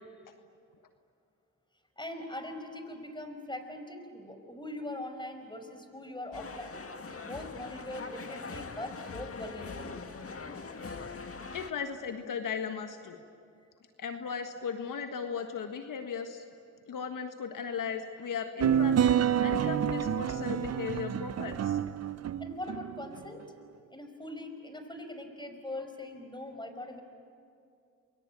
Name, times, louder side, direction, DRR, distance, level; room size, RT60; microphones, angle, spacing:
voice 1, 2.0-6.8 7.2-9.9 22.4-23.4 23.9-27.0, left 1 dB, 15° left, 7 dB, 5.1 m, -41 dB
sound 1, 6.3-11.7, left 4 dB, 40° left, 2.0 m, -42 dB
voice 2, 11.5-13.2 14.0-16.4 16.9-21.8, left 6 dB, 70° left, 6 dB, 1.6 m, -37 dB
sound 2, 18.6-23.2, right 9 dB, 50° right, 0.7 m, -28 dB
29.0 x 22.5 x 8.8 m, 2.4 s
supercardioid pair, 55°, 34 cm